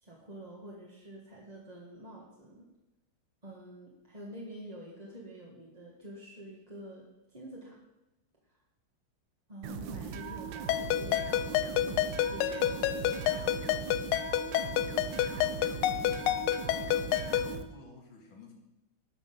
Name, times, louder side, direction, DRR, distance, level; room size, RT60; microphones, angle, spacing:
voice 1, 0.0-2.7 3.4-7.8 9.5-13.7, right 1 dB, 20° right, -4 dB, 1.5 m, -47 dB
sound 1, 9.6-17.6, right 7 dB, 70° right, 1.4 m, -40 dB
voice 2, 10.0-10.4 15.2-16.5 17.1-18.6, left 3 dB, 70° left, 1 dB, 2.6 m, -52 dB
Ringtone, 10.7-17.5, left 12 dB, 85° left, 1.5 m, -30 dB
12.5 x 5.9 x 6.0 m, 0.97 s
omnidirectional pair, 2.3 m